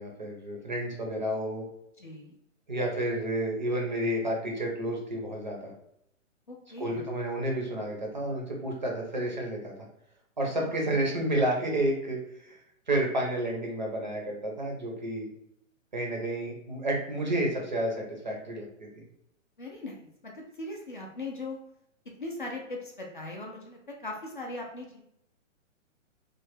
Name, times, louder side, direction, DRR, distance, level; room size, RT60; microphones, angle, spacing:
voice 1, 0.0-1.7 2.7-5.7 6.8-9.7 10.4-12.6 12.9-15.3 15.9-19.0, right 1 dB, 35° right, -1 dB, 0.5 m, -30 dB
voice 2, 2.0-2.3 6.5-7.0 10.5-10.8 19.6-21.6 22.2-25.0, left 2 dB, 40° left, 0 dB, 0.4 m, -39 dB
3.1 x 2.1 x 3.2 m, 0.77 s
hypercardioid pair, 180°, 39 cm